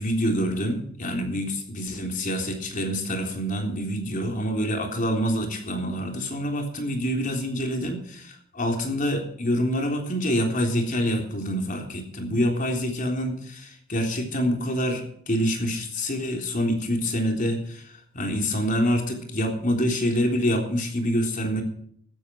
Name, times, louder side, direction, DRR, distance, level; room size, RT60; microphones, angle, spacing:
voice 1, 0.0-21.6, equal, 45° left, 3 dB, 3.7 m, -26 dB
15.5 x 13.5 x 4.6 m, 0.63 s
head